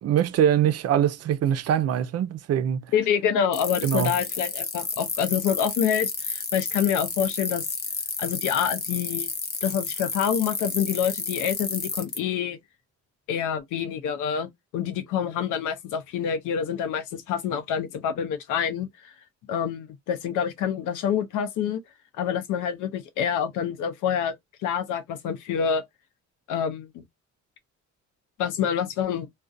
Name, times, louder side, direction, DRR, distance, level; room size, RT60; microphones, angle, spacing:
voice 1, 0.0-2.9 3.8-4.1, right 9 dB, 55° right, 0.5 m, -23 dB
voice 2, 2.9-7.6 8.2-9.3 9.6-12.6 13.3-19.1 19.5-21.8 22.2-24.3 24.6-25.8 26.5-27.0 28.4-29.3, left 8 dB, 90° left, 0.6 m, -27 dB
sound 1, 3.5-12.2, left 4 dB, 35° left, 0.7 m, -31 dB
2.4 x 2.2 x 2.5 m
cardioid pair, 90°, 30 cm